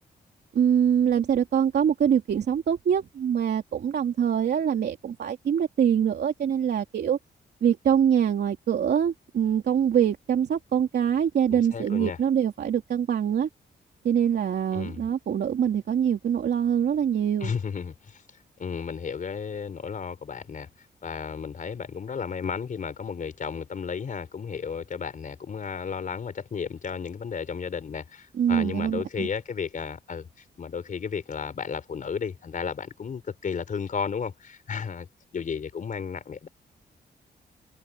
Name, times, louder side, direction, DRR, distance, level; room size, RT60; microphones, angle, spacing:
voice 1, 0.5-7.2 7.6-13.5 14.0-17.5 28.3-29.3, right 8 dB, 75° right, 3.0 m, -24 dB
voice 2, 11.5-12.2 14.7-15.0 17.4-18.2 18.6-20.7 21.0-30.3 30.6-35.1 35.3-36.5, left 6 dB, 50° left, 4.5 m, -33 dB
wide cardioid pair, 140°, 17 cm